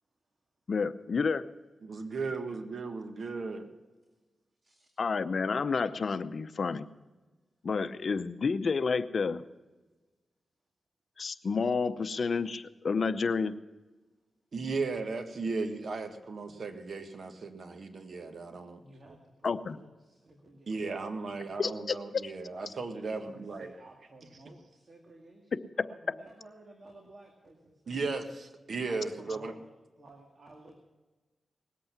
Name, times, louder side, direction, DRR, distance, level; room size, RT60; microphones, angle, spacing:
voice 1, 0.7-1.4 5.0-6.9 7.6-9.4 11.2-13.5 19.4-19.8 21.6-22.0 22.2-22.3 25.5-25.9, left 5 dB, 60° left, 13 dB, 0.7 m, -30 dB
voice 2, 1.8-3.7 14.5-18.8 20.7-23.7 27.9-29.5, right 4 dB, 65° right, 6 dB, 1.7 m, -36 dB
voice 3, 18.5-20.9 22.9-28.0 28.9-30.8, right 2 dB, 45° right, 2 dB, 2.2 m, -55 dB
20.0 x 8.5 x 6.0 m, 1.2 s
cardioid pair, 65°, 0 cm